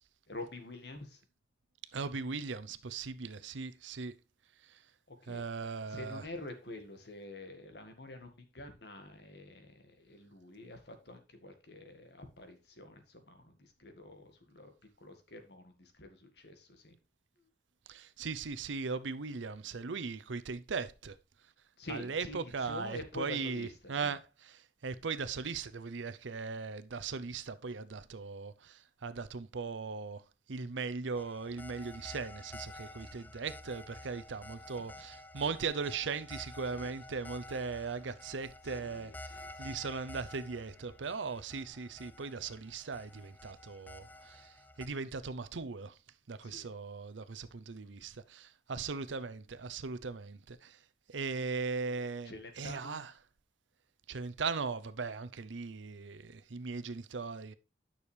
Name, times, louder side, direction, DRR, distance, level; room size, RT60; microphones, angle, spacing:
voice 1, 0.3-1.2 5.1-5.4 5.9-14.7 15.0-17.0 21.8-24.2 34.8-35.0 36.7-36.9 38.6-39.7 46.4-46.7 52.2-53.0, left 2 dB, 60° left, 1.7 m, -47 dB
voice 2, 1.9-4.1 4.6-4.8 5.3-6.2 17.9-21.2 21.9-30.2 30.5-46.0 46.3-50.8 51.1-53.1 54.1-57.5, right 4 dB, 85° right, 0.7 m, -39 dB
sound 1, 31.1-44.9, left 1 dB, 10° left, 0.3 m, -50 dB
9.8 x 6.3 x 3.3 m
head